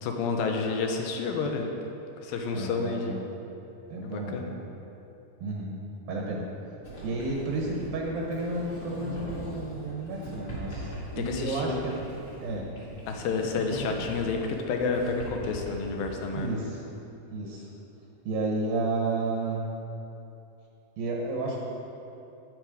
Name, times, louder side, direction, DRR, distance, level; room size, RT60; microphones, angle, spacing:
voice 1, 0.0-1.7 2.2-3.1 4.0-4.5 11.2-11.8 13.1-16.5, left 4 dB, 75° left, 3 dB, 2.4 m, -30 dB
voice 2, 2.5-3.2 3.9-4.5 5.4-5.8 6.1-6.5 7.0-12.0 12.4-12.7 16.3-16.9 17.3-17.7 18.3-19.7 21.0-21.6, right 2 dB, 70° right, -2 dB, 2.7 m, -31 dB
Sliding door, 6.8-16.5, right 1 dB, 25° left, 2.9 m, -40 dB
11.0 x 8.7 x 5.0 m, 2.9 s
omnidirectional pair, 4.6 m